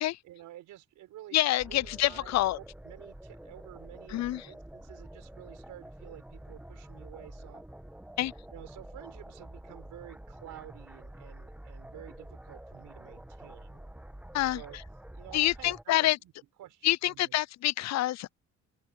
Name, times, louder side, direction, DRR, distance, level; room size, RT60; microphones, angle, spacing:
voice 1, 0.2-7.6 8.5-13.8 14.5-14.8 15.1-16.3 16.6-17.4, right 14 dB, 90° right, 5.2 m, -50 dB
voice 2, 1.3-2.6 4.1-4.5 8.2-8.3 14.3-14.6 15.3-16.2 16.8-18.3, left 15 dB, 60° left, 0.4 m, -27 dB
sound 1, 1.6-15.8, right 1 dB, 5° right, 1.1 m, -48 dB
open air
cardioid pair, 90°, 30 cm